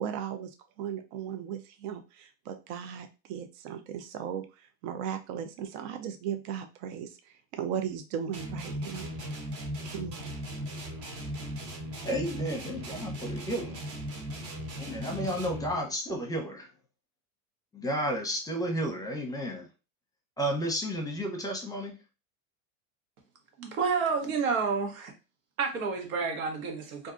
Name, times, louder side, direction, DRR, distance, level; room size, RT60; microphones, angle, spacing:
voice 1, 0.0-9.1 9.8-10.3, right 8 dB, 60° right, 0.6 m, -37 dB
sound 1, 8.3-15.8, equal, 45° right, 1.1 m, -38 dB
voice 2, 12.0-13.8 14.8-16.7 17.7-19.7 20.4-21.9, equal, 10° left, 0.7 m, -32 dB
voice 3, 23.6-25.1 25.6-27.1, right 5 dB, 85° right, 1.1 m, -29 dB
2.6 x 2.3 x 3.7 m
supercardioid pair, 110°, 41 cm